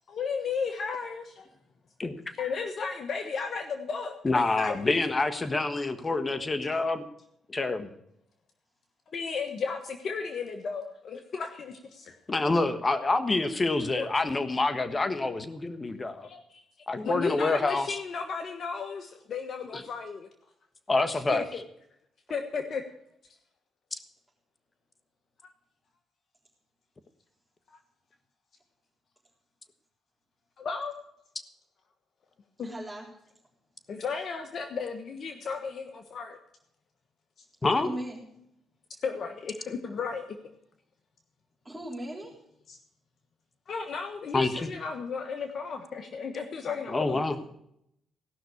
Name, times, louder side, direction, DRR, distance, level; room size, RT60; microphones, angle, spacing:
voice 1, 0.1-1.2 2.4-5.0 9.1-12.1 13.9-14.1 16.2-20.3 21.3-21.6 22.3-22.8 30.6-30.9 32.6-32.7 33.9-36.4 39.0-40.4 42.7-42.8 43.7-47.2, left 5 dB, 55° left, 6 dB, 1.3 m, -34 dB
voice 2, 4.2-7.0 7.5-7.9 12.3-16.3 16.9-18.0 19.7-19.8 20.9-21.5 23.9-24.0 37.6-37.9 44.3-44.7 46.9-47.4, left 3 dB, 25° left, 9 dB, 1.3 m, -27 dB
voice 3, 32.6-33.1 37.8-38.2 41.6-42.4 46.6-46.8 47.1-47.4, right 1 dB, 15° right, -5 dB, 3.8 m, -38 dB
17.0 x 6.0 x 8.3 m, 0.75 s
cardioid pair, 75°, 0 cm